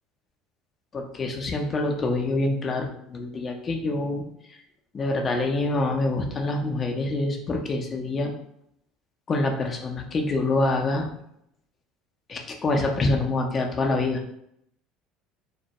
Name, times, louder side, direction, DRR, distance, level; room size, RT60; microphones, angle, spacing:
voice 1, 0.9-4.2 4.9-8.3 9.3-11.1 12.3-14.2, left 2 dB, 35° left, 2 dB, 0.5 m, -26 dB
2.1 x 2.1 x 2.8 m, 0.75 s
hypercardioid pair, 75°, 0 cm